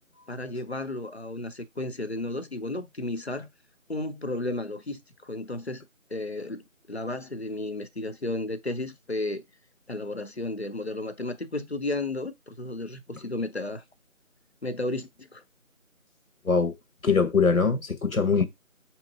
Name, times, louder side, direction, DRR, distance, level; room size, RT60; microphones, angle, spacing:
voice 1, 0.3-3.5 3.9-6.6 6.9-9.4 9.9-13.8 14.6-15.4, left 2 dB, 50° left, 0.7 m, -33 dB
voice 2, 16.4-16.8 17.0-18.4, left 5 dB, 85° left, 1.3 m, -22 dB
3.6 x 3.0 x 4.6 m
figure-of-eight pair, 170°, 41 cm